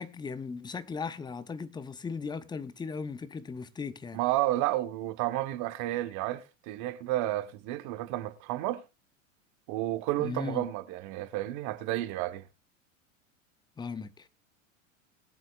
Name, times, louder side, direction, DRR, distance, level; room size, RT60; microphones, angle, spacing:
voice 1, 0.0-4.2 10.2-10.7 13.8-14.3, left 5 dB, 10° left, 0.7 m, -37 dB
voice 2, 4.1-8.8 9.7-12.4, right 15 dB, 45° right, 1.4 m, -31 dB
21.0 x 7.7 x 2.5 m
hypercardioid pair, 90°, 40 cm